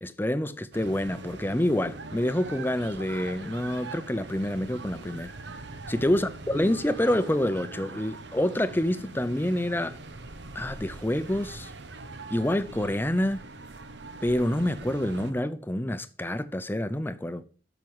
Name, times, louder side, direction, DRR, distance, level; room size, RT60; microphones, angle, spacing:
voice 1, 0.0-5.3 5.9-10.0 10.5-11.7 12.3-13.4 14.2-17.4, left 1 dB, 10° left, 0.6 m, -27 dB
sound 1, 0.7-15.3, right 3 dB, 85° right, 1.0 m, -42 dB
7.6 x 6.1 x 7.1 m
head